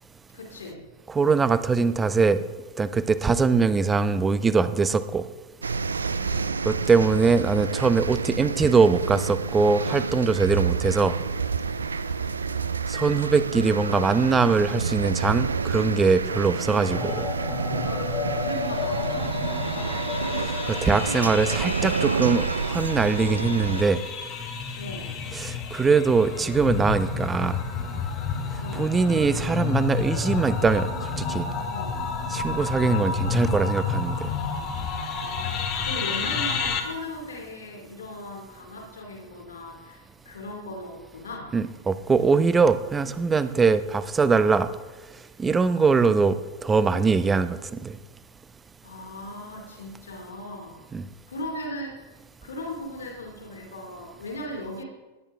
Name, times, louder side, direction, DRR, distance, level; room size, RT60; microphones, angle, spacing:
voice 1, 0.3-0.8 6.1-6.6 11.8-12.7 17.8-20.0 24.8-25.2 28.6-28.9 31.7-32.0 35.1-41.6 45.7-45.9 48.8-50.8 51.3-52.0 52.4-54.8, left 1 dB, 70° left, 2 dB, 2.5 m, -38 dB
voice 2, 1.1-2.4 2.8-5.2 6.6-11.1 12.9-17.3 20.7-24.0 25.3-27.6 28.7-30.9 31.2-31.5 32.3-34.3 41.5-44.7 45.4-48.0 50.9-51.0, right 4 dB, 15° right, 13 dB, 0.7 m, -22 dB
sound 1, 5.6-23.8, right 5 dB, 75° right, 0.4 m, -29 dB
sound 2, 16.9-36.8, left 5 dB, 40° left, 2.0 m, -30 dB
17.5 x 10.0 x 3.5 m, 1.2 s
figure-of-eight pair, 90°, 0 cm